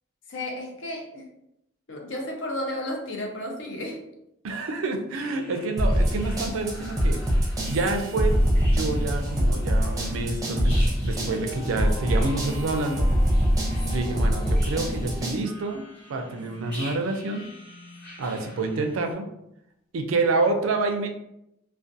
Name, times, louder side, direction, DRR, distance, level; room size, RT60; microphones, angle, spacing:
voice 1, 0.3-1.3 1.9-4.0 13.8-14.1, left 1 dB, 65° left, 1 dB, 0.6 m, -33 dB
voice 2, 4.4-7.2 7.7-13.1 13.9-15.8 16.1-17.5 18.2-19.2 19.9-21.1, right 3 dB, 85° right, 5 dB, 0.4 m, -28 dB
sound 1, 5.1-19.1, left 1 dB, 5° left, 1.0 m, -46 dB
sound 2, 5.8-15.4, equal, 15° right, 0.5 m, -24 dB
2.4 x 2.2 x 2.5 m, 0.83 s
head